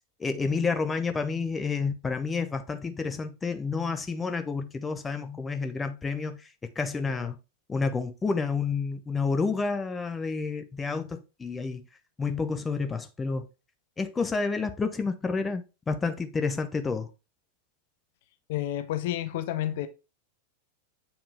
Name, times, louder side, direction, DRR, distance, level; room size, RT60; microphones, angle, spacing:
voice 1, 0.2-6.5 6.8-7.4 7.7-11.8 12.2-13.5 14.0-17.1, left 4 dB, 15° left, 0.8 m, -29 dB
voice 2, 18.5-19.9, left 12 dB, 50° left, 0.7 m, -30 dB
7.5 x 4.6 x 3.4 m
figure-of-eight pair, 90°, 0 cm